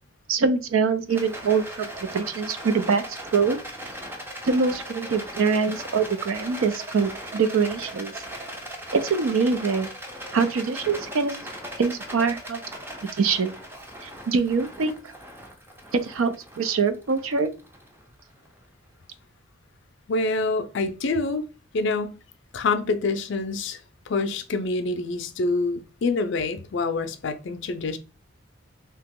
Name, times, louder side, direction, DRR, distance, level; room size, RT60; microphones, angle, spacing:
voice 1, 0.3-3.6 4.4-8.1 8.9-9.9 10.3-11.4 11.8-12.6 13.1-13.5 14.0-14.9 15.9-17.5, right 5 dB, 75° right, 0.4 m, -24 dB
Rattle, 1.1-18.5, equal, 10° right, 0.4 m, -39 dB
voice 2, 20.1-21.5 21.7-22.2 22.5-23.8 24.1-28.0, left 3 dB, 60° left, 0.4 m, -26 dB
2.9 x 2.8 x 3.6 m
head